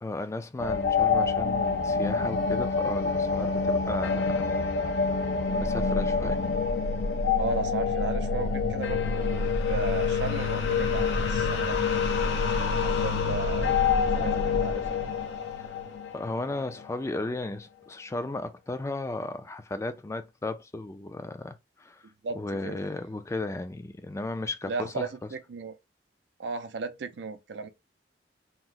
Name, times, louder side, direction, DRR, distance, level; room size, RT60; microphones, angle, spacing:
voice 1, 0.0-4.5 5.5-6.4 7.3-7.4 15.6-15.7 16.1-22.0 22.4-25.1, left 2 dB, 15° left, 0.3 m, -35 dB
sound 1, 0.6-16.8, left 5 dB, 85° left, 0.7 m, -27 dB
voice 2, 7.4-13.8 14.1-15.0 22.2-22.8 24.7-25.7 26.4-27.7, right 4 dB, 80° right, 0.5 m, -35 dB
2.9 x 2.0 x 3.7 m
head